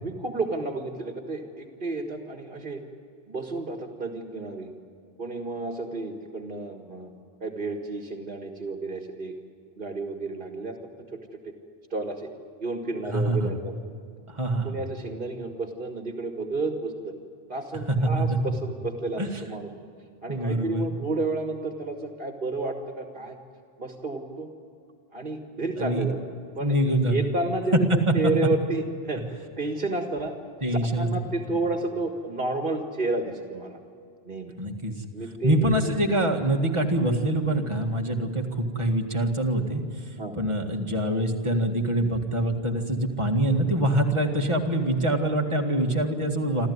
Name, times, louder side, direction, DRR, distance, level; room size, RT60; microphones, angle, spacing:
voice 1, 0.0-2.8 3.3-4.7 5.2-7.1 7.4-9.3 9.8-10.8 11.9-12.3 12.6-13.7 14.6-17.1 17.5-19.7 20.2-23.4 23.8-24.5 25.1-26.7 27.1-27.8 28.1-29.2 29.6-30.3 30.7-33.8 34.2-34.5 35.1-35.9 40.2-40.4, right 2 dB, 55° right, 4 dB, 1.8 m, -31 dB
voice 2, 13.1-13.6 14.3-14.8 17.9-18.4 19.2-19.4 20.3-20.9 25.8-26.1 26.6-27.3 27.9-28.5 30.6-31.1 34.6-34.9 35.4-39.8 40.4-46.7, right 1 dB, 30° right, 1 dB, 2.0 m, -25 dB
28.0 x 13.5 x 9.6 m, 2.4 s
omnidirectional pair, 1.0 m